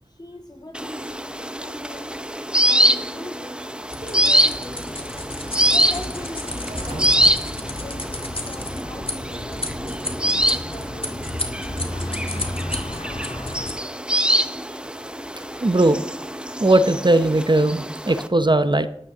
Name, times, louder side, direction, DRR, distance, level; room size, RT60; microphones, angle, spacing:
voice 1, 0.1-2.1 2.6-3.6 4.0-5.1 5.4-7.4 7.8-11.4, left 1 dB, 35° left, 3 dB, 2.5 m, -40 dB
sound 1, 0.7-18.3, right 1 dB, 10° right, 0.9 m, -25 dB
sound 2, 3.9-13.7, left 1 dB, 50° left, 2.0 m, -32 dB
sound 3, 5.1-10.3, right 1 dB, 60° right, 4.2 m, -40 dB
voice 2, 15.6-16.0 16.6-18.9, right 2 dB, 40° right, 11 dB, 0.7 m, -18 dB
11.0 x 8.8 x 6.6 m, 0.67 s
wide cardioid pair, 45°, 12 cm